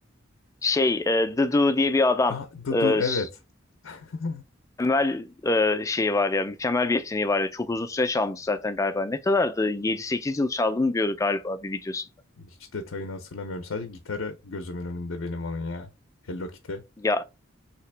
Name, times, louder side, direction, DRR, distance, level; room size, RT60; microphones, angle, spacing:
voice 1, 0.6-2.4 2.7-3.2 4.8-12.1 17.0-17.2, left 2 dB, 15° left, 0.3 m, -24 dB
voice 2, 2.3-3.3 3.8-4.4 12.4-15.9 16.2-16.8, left 3 dB, 75° left, 0.5 m, -32 dB
3.3 x 2.9 x 3.2 m
head